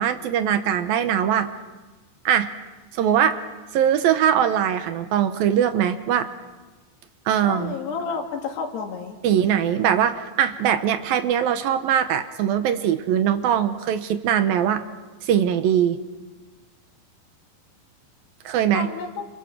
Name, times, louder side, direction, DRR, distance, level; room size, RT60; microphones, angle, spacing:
voice 1, 0.0-1.5 2.3-2.5 2.9-3.4 3.7-6.3 7.3-7.8 9.2-14.8 15.2-16.0 18.5-18.9, right 9 dB, 75° right, 9 dB, 2.6 m, -21 dB
voice 2, 7.4-9.2 18.7-19.3, left 5 dB, 85° left, 2 dB, 4.6 m, -30 dB
28.0 x 28.0 x 6.1 m, 1.2 s
omnidirectional pair, 4.7 m